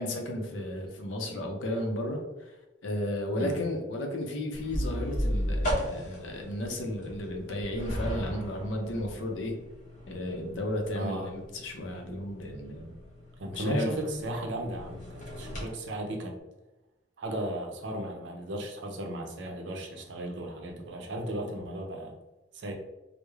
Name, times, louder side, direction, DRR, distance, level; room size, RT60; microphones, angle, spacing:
voice 1, 0.0-2.5 2.8-9.5 10.1-13.0 13.5-13.9, left 1 dB, 90° left, 2 dB, 0.5 m, -33 dB
sound 1, 4.5-15.7, equal, 40° left, 0.8 m, -36 dB
voice 2, 10.9-11.3 13.4-16.4 17.2-22.2 22.5-22.7, right 1 dB, 65° right, 2 dB, 0.5 m, -35 dB
3.0 x 2.0 x 2.3 m, 1.0 s
head